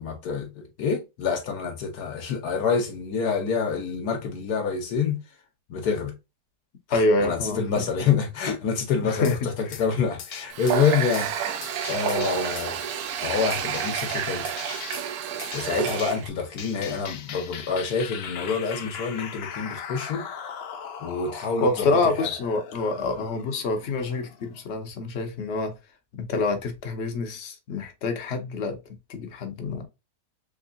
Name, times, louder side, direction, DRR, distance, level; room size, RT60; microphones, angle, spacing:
voice 1, 0.0-5.2 5.7-6.1 6.9-12.8 13.2-14.5 15.5-20.3 21.0-22.3, left 6 dB, 70° left, 1.3 m, -27 dB
voice 2, 6.9-7.6 9.0-9.3 21.6-25.7 26.1-28.8 29.1-29.9, left 3 dB, 50° left, 0.9 m, -26 dB
sound 1, 9.2-9.4 9.7-9.9 10.2-10.8 11.1-11.3 11.6-12.7 13.5-15.1 15.4-16.1 16.6-24.7, left 7 dB, 90° left, 0.5 m, -39 dB
Water tap faucet, 10.5-16.3, right 8 dB, 70° right, 1.0 m, -29 dB
3.6 x 3.2 x 2.5 m
omnidirectional pair, 1.8 m